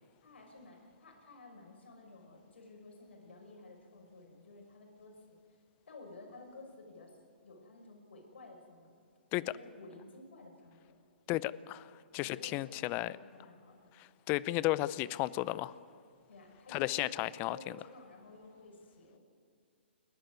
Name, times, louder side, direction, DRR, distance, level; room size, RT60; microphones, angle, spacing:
voice 1, 0.2-5.4 5.9-7.2 7.4-8.9 9.4-11.0 12.2-13.9 16.3-19.2, left 3 dB, 75° left, 2 dB, 6.3 m, -53 dB
voice 2, 11.3-13.1 14.0-15.7 16.7-17.6, left 18 dB, 30° left, 18 dB, 0.6 m, -34 dB
29.0 x 12.0 x 9.6 m, 2.3 s
hypercardioid pair, 135°, 6 cm